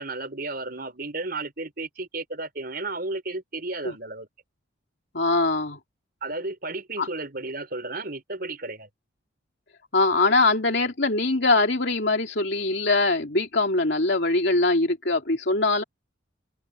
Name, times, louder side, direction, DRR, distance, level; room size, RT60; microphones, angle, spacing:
voice 1, 0.0-4.3 6.2-8.9, right 2 dB, 50° right, 5.4 m, -33 dB
voice 2, 5.1-5.8 7.0-7.1 9.9-15.8, left 2 dB, 60° left, 2.9 m, -22 dB
open air
head